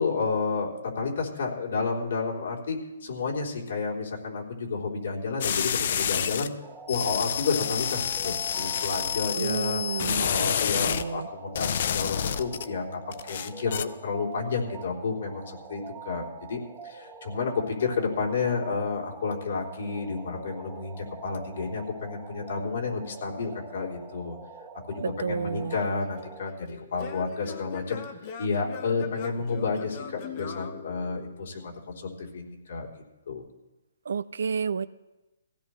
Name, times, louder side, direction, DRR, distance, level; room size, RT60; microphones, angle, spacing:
voice 1, 0.0-6.5 6.9-24.4 24.9-28.0 28.4-32.9 33.3-33.4, left 4 dB, 65° left, -2 dB, 3.5 m, -31 dB
sound 1, 5.4-6.5 6.9-11.1 11.6-12.7 13.1-13.8, left 8 dB, 50° left, 0.5 m, -29 dB
sound 2, 6.6-26.5, right 5 dB, 10° right, 1.3 m, -45 dB
voice 2, 9.3-11.3 25.0-25.8 34.1-34.9, right 6 dB, 75° right, 18 dB, 0.5 m, -31 dB
Singing / Plucked string instrument, 25.7-31.6, left 7 dB, 35° left, 0.9 m, -42 dB
20.0 x 16.0 x 3.2 m, 1.0 s
hypercardioid pair, 165°, 0 cm